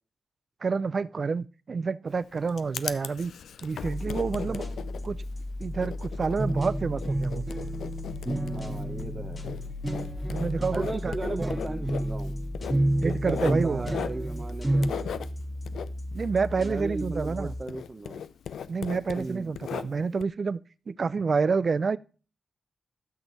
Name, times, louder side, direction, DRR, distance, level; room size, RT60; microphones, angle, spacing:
voice 1, 0.6-3.3 3.6-4.6 5.0-5.2 5.6-7.5 10.3-11.5 13.0-13.9 16.1-17.5 18.7-20.6 20.9-22.0, right 5 dB, 55° right, 0.4 m, -28 dB
Writing, 2.1-17.4 17.7-20.2, left 8 dB, 80° left, 0.4 m, -38 dB
sound 1, 3.8-17.6, left 1 dB, 55° left, 1.8 m, -36 dB
voice 2, 4.4-4.8 8.5-9.5 10.7-12.4 13.0-15.2 16.6-18.2 19.1-19.5, right 3 dB, 40° right, 0.8 m, -36 dB
sound 2, 6.4-14.9, right 1 dB, 20° right, 1.1 m, -30 dB
13.0 x 6.1 x 4.0 m
supercardioid pair, 40°, 0 cm